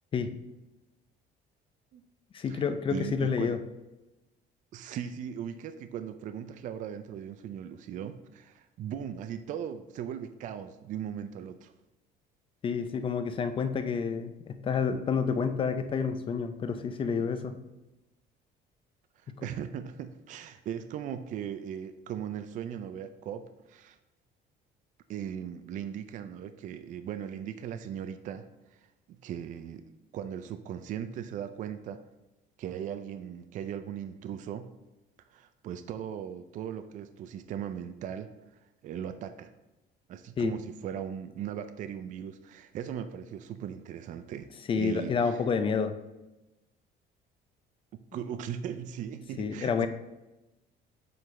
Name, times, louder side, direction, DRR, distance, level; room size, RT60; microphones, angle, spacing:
voice 1, 2.3-3.6 12.6-17.6 19.3-19.5 40.4-40.5 44.7-45.9 49.4-49.9, left 6 dB, 30° left, 9 dB, 0.4 m, -29 dB
voice 2, 2.9-3.5 4.7-11.7 19.4-24.0 25.1-28.5 29.2-29.8 30.1-32.0 32.6-34.7 35.3-38.3 38.8-39.5 40.1-45.4 47.9-49.9, right 9 dB, 45° right, 10 dB, 0.4 m, -38 dB
7.6 x 3.9 x 3.2 m, 1.0 s
cardioid pair, 155°, 18 cm